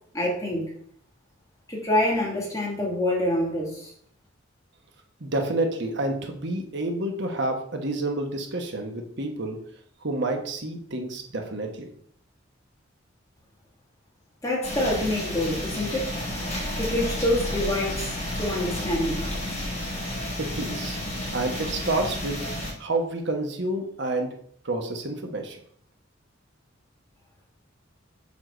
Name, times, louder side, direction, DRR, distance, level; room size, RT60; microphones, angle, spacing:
voice 1, 0.1-0.7 1.7-3.9 14.4-16.1 16.8-19.3, left 1 dB, 15° left, -4 dB, 2.8 m, -26 dB
voice 2, 5.2-9.6 10.0-11.9 20.4-21.0 21.3-22.4 22.8-24.3 24.6-25.6, right 2 dB, 65° right, 3 dB, 1.3 m, -29 dB
sound 1, 14.6-22.7, left 1 dB, 35° left, 4.0 m, -31 dB
7.3 x 4.8 x 6.3 m, 0.63 s
head